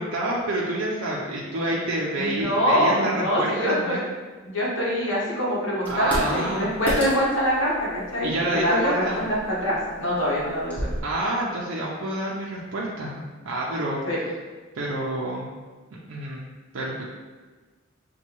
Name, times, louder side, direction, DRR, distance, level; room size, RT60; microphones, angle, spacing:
voice 1, 0.0-4.1 5.9-6.7 8.2-9.2 11.0-14.0 14.7-15.5 15.9-16.5 16.7-17.1, right 1 dB, 80° right, -4 dB, 0.5 m, -28 dB
voice 2, 2.2-4.0 4.5-9.0 9.5-10.9 14.1-14.2, equal, 65° left, -5 dB, 1.2 m, -24 dB
sound 1, 5.8-11.0, equal, 10° left, 0.9 m, -34 dB
5.5 x 2.3 x 3.0 m, 1.3 s
head